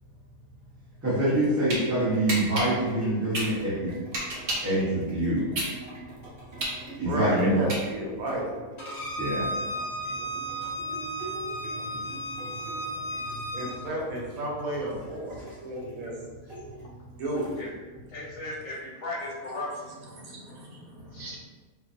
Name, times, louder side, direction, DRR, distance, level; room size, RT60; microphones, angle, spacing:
voice 1, 1.0-3.9 4.6-5.5 7.0-7.5 9.2-9.5 11.9-12.0, right 1 dB, 15° right, -12 dB, 0.4 m, -25 dB
sound 1, 1.0-18.1 18.6-18.7, right 2 dB, 40° right, 1.1 m, -45 dB
sound 2, 1.3-1.8 2.3-4.8 5.2-8.2, right 1 dB, 85° right, 0.4 m, -32 dB
voice 2, 7.1-8.5 13.5-16.1 17.2-17.5 20.2-21.4, right 1 dB, 70° right, -3 dB, 1.1 m, -32 dB
Bowed string instrument, 8.8-13.7, right 1 dB, 45° left, 0.5 m, -34 dB
voice 3, 18.1-19.9 21.1-21.2, left 2 dB, 70° left, -2 dB, 0.9 m, -36 dB
2.5 x 2.3 x 2.5 m, 1.3 s
omnidirectional pair, 1.6 m